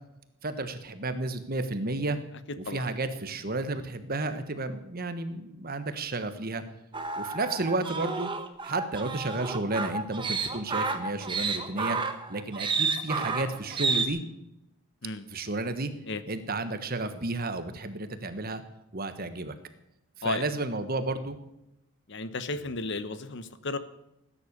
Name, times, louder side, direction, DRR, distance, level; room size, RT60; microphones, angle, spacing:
voice 1, 0.4-2.2 2.7-6.6 7.2-8.3 8.6-12.0 12.3-14.2 15.3-15.9 16.3-18.6 18.9-19.5 20.2-21.4, right 2 dB, 40° right, 10 dB, 1.3 m, -32 dB
voice 2, 2.5-2.9 15.0-15.2 16.1-16.2 20.2-20.4 22.1-23.8, left 3 dB, 55° left, 12 dB, 1.1 m, -34 dB
sound 1, 6.9-14.1, right 4 dB, 20° right, 1.3 m, -31 dB
18.5 x 10.0 x 6.8 m, 0.87 s
head